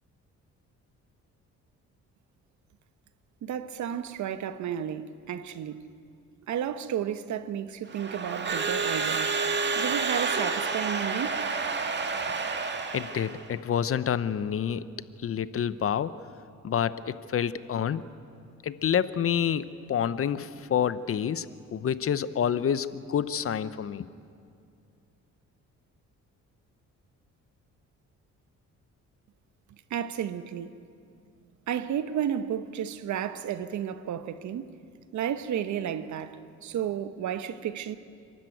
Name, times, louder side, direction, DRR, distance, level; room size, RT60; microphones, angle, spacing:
voice 1, 3.4-5.9 6.5-9.3 9.7-11.4 29.9-30.8 31.7-34.8 35.1-38.0, right 9 dB, 70° right, 1.1 m, -32 dB
Crowd / Alarm, 7.9-13.4, right 4 dB, 35° right, 1.8 m, -29 dB
voice 2, 12.9-14.9 15.2-16.2 16.6-18.0 18.6-21.5 21.7-24.1, left 8 dB, 50° left, 0.8 m, -28 dB
28.0 x 13.0 x 9.2 m
cardioid pair, 90°, 30 cm